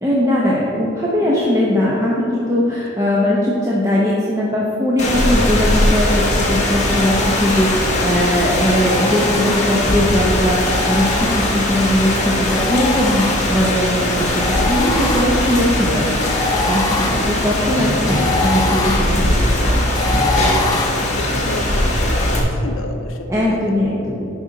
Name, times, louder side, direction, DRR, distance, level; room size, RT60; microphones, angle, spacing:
voice 1, 0.0-10.6 10.8-16.1 16.4-19.8 23.3-24.3, left 1 dB, 15° right, -6 dB, 0.9 m, -19 dB
Rain, 5.0-22.4, left 1 dB, 35° left, 1.3 m, -19 dB
sound 1, 6.8-8.1 8.7-10.0 10.6-11.9 12.5-13.8 14.3-20.9, left 4 dB, 20° left, 0.4 m, -26 dB
voice 2, 20.6-23.7, left 2 dB, 80° left, 4 dB, 0.6 m, -31 dB
11.0 x 5.4 x 3.9 m, 2.8 s
head